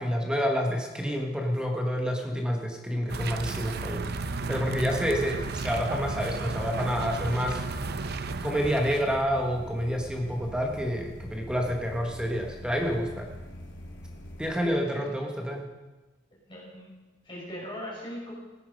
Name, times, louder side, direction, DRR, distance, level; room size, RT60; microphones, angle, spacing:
voice 1, 0.0-4.1 4.5-7.6 8.4-13.3 14.4-15.7, equal, 5° right, 1 dB, 1.3 m, -28 dB
sound 1, 3.1-9.2, right 3 dB, 60° right, 0.7 m, -33 dB
sound 2, 4.0-14.5, equal, 80° left, 2.8 m, -43 dB
voice 2, 4.4-5.3 14.6-15.1 16.5-16.9 17.2-18.3, equal, 25° left, -5 dB, 5.6 m, -41 dB
16.5 x 9.9 x 5.2 m, 1.2 s
head